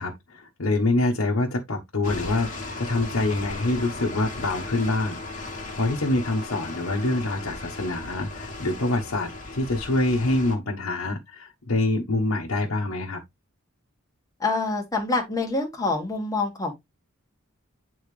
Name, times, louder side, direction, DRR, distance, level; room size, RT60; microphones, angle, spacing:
voice 1, 0.0-13.2, left 2 dB, 75° left, 1.1 m, -26 dB
sound 1, 2.0-10.6, left 2 dB, 40° left, 1.7 m, -36 dB
voice 2, 14.4-16.7, left 3 dB, 15° left, 1.5 m, -26 dB
8.7 x 3.9 x 3.2 m
head